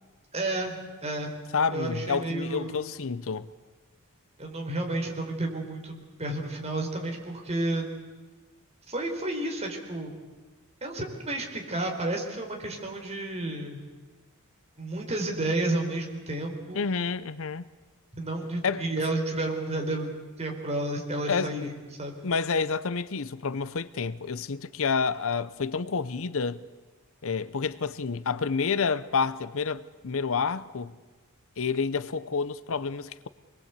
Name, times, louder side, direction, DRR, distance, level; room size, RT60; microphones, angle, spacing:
voice 1, 0.3-1.3 1.7-2.9 4.4-7.9 8.9-10.1 10.8-13.8 14.8-16.9 18.1-22.2, right 2 dB, 30° right, 4.3 m, -31 dB
voice 2, 1.5-3.5 16.7-17.7 18.6-18.9 21.3-21.7 22.2-26.6 27.2-30.9 31.6-33.3, left 5 dB, 65° left, 0.7 m, -29 dB
26.5 x 21.5 x 8.2 m
head